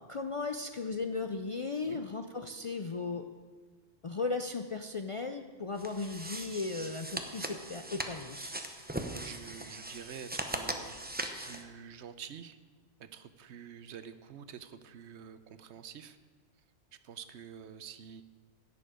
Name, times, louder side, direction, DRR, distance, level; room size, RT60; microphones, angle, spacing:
voice 1, 0.0-3.2 4.0-8.5, left 4 dB, 50° left, 6 dB, 0.4 m, -36 dB
sound 1, 5.8-11.6, right 1 dB, 10° right, 0.7 m, -40 dB
voice 2, 8.7-11.0 11.4-12.6 13.0-16.2 17.0-18.2, right 8 dB, 75° right, 12 dB, 1.0 m, -48 dB
17.0 x 6.9 x 5.0 m, 1.5 s
omnidirectional pair, 1.2 m